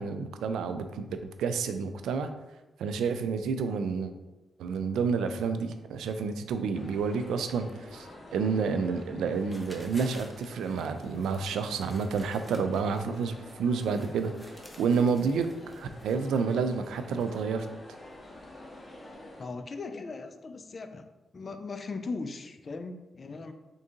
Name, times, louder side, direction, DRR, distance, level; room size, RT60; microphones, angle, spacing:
voice 1, 0.0-2.3 2.8-4.1 4.6-14.3 14.8-15.5 15.8-17.7, right 5 dB, 85° right, 8 dB, 0.3 m, -29 dB
sound 1, 6.7-19.4, left 1 dB, 30° left, 0.7 m, -48 dB
sound 2, 9.3-17.6, equal, ahead, 0.7 m, -53 dB
voice 2, 19.4-21.1 21.3-23.5, left 3 dB, 45° left, 8 dB, 0.4 m, -38 dB
3.7 x 2.6 x 3.6 m, 1.1 s
cardioid pair, 65°, 0 cm